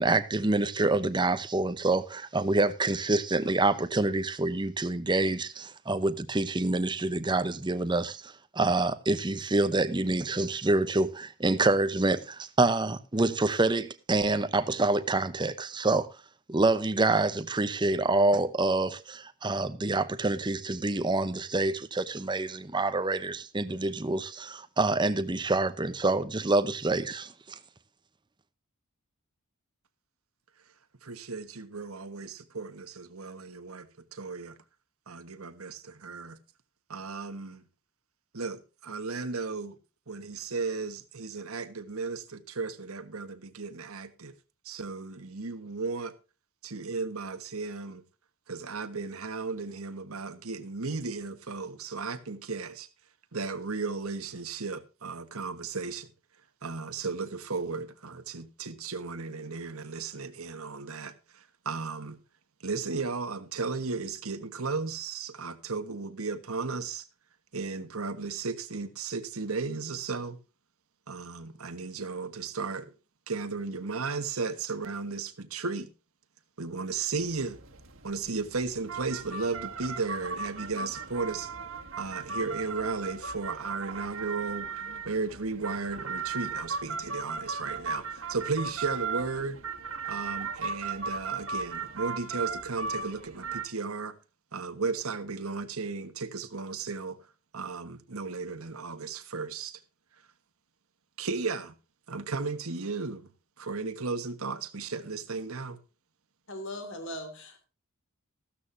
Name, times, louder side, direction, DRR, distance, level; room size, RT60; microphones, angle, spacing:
voice 1, 0.0-16.1 16.5-27.3, right 2 dB, 20° right, 0.7 m, -27 dB
voice 2, 31.0-34.5 35.1-36.4 36.9-37.6 38.3-39.8 40.1-44.3 44.6-46.1 46.6-48.0 48.5-52.9 53.3-56.1 56.6-62.2 62.6-67.1 67.5-70.4 71.1-72.9 73.3-75.9 76.6-77.6 78.0-81.5 82.0-84.8 85.0-89.6 90.1-94.1 94.5-97.2 97.5-99.8 101.2-101.7 102.1-103.3 103.6-105.8, right 4 dB, 85° right, 1.4 m, -35 dB
sound 1, 77.1-93.6, right 5 dB, 70° right, 1.8 m, -37 dB
voice 3, 106.5-107.6, left 1 dB, 60° left, 3.0 m, -39 dB
14.5 x 13.0 x 2.7 m
head